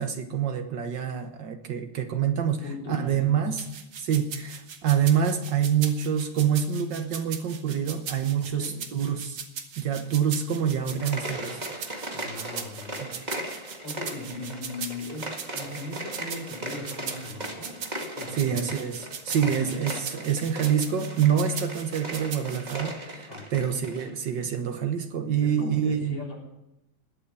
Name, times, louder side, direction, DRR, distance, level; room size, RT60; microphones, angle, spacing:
voice 1, 0.0-3.7 4.0-9.4 9.8-12.1 13.0-13.2 18.3-26.2, right 8 dB, 75° right, 6 dB, 1.0 m, -26 dB
voice 2, 2.3-3.5 8.4-8.8 11.9-12.9 13.8-15.3 15.5-17.7 18.2-18.6 19.3-19.8 23.3-23.7 25.4-26.3, left 2 dB, 40° left, -2 dB, 4.7 m, -39 dB
sound 1, 3.6-22.8, right 7 dB, 50° right, 1.6 m, -39 dB
sound 2, 10.9-24.1, right 1 dB, 15° right, 1.7 m, -38 dB
20.0 x 8.6 x 8.2 m, 0.88 s
omnidirectional pair, 3.6 m